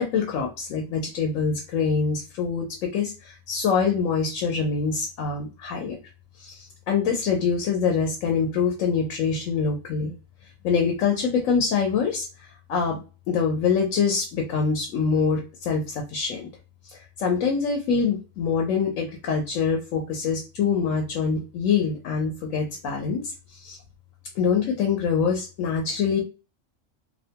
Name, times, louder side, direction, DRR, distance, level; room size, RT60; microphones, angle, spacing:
voice 1, 0.0-6.0 6.4-10.1 10.6-13.0 13.3-16.5 16.8-23.8 24.4-26.2, left 6 dB, 85° left, 1 dB, 1.0 m, -25 dB
2.7 x 2.1 x 2.7 m, 0.33 s
omnidirectional pair, 1.3 m